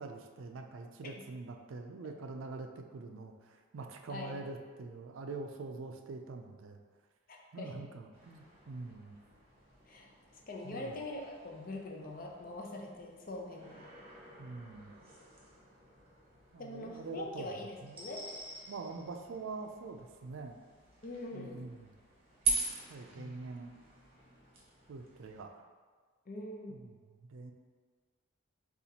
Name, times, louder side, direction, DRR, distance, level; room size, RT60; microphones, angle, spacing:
voice 1, 0.0-6.8 7.5-9.2 10.6-10.9 14.4-14.9 16.5-18.0 18.7-20.6 21.3-21.9 22.9-23.7 24.9-25.6 26.7-27.5, right 3 dB, 85° right, 4 dB, 0.4 m, -45 dB
voice 2, 4.1-4.4 7.3-7.8 9.8-10.1 10.5-13.8 16.6-18.3 21.0-21.7 23.2-23.4 26.3-26.8, left 2 dB, 45° left, 0 dB, 0.6 m, -43 dB
sound 1, 8.1-25.4, right 4 dB, 30° right, 0.9 m, -44 dB
6.8 x 2.5 x 2.8 m, 1.5 s
head